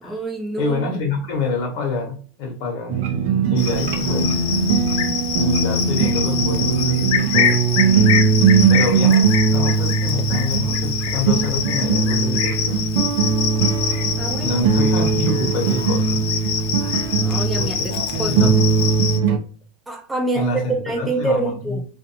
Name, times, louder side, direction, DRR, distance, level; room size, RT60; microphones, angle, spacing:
voice 1, 0.0-0.9 14.2-14.6 17.2-18.5 19.9-21.8, right 2 dB, 10° right, 0.3 m, -26 dB
voice 2, 0.6-4.3 5.4-7.6 8.7-12.8 14.4-16.2 16.6-17.1 17.6-18.5 20.3-21.8, left 2 dB, 55° left, 1.0 m, -27 dB
sound 1, 2.9-19.4, right 5 dB, 70° right, 0.5 m, -19 dB
Cricket, 3.6-19.2, left 8 dB, 70° left, 0.5 m, -25 dB
2.5 x 2.2 x 2.8 m
supercardioid pair, 150°, 0 cm